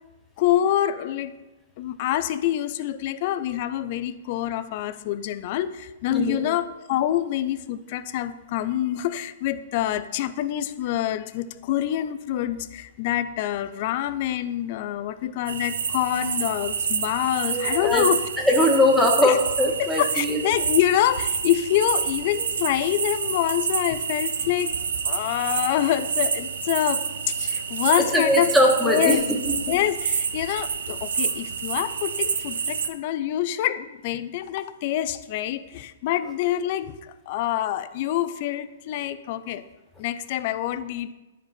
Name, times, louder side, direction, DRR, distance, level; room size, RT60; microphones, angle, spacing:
voice 1, 0.4-1.3 1.8-18.2 19.2-19.4 19.8-24.7 25.0-28.5 28.8-29.2 29.7-39.7 40.0-41.1, left 12 dB, 45° left, 12 dB, 0.6 m, -26 dB
voice 2, 6.1-6.4 17.4-18.0 18.4-20.4 28.1-29.5, left 1 dB, ahead, -1 dB, 1.6 m, -21 dB
sound 1, 15.5-32.9, right 6 dB, 80° right, 0.8 m, -28 dB
10.0 x 5.0 x 4.4 m, 1.1 s
hypercardioid pair, 140°, 0 cm